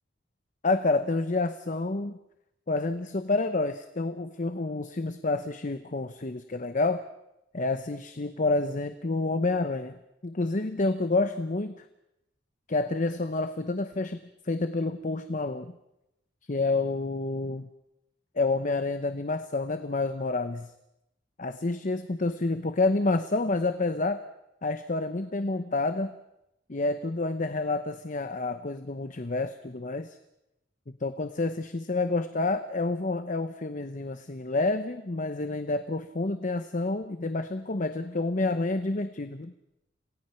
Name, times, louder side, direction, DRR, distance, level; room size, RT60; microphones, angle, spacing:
voice 1, 0.6-2.2 2.7-7.0 7.5-10.0 10.2-11.7 12.7-14.2 14.4-15.7 16.5-17.7 18.4-20.7 21.4-24.2 24.6-26.1 26.7-30.2 31.0-39.5, left 3 dB, 45° left, 10 dB, 0.8 m, -28 dB
27.5 x 17.5 x 5.8 m, 0.87 s
head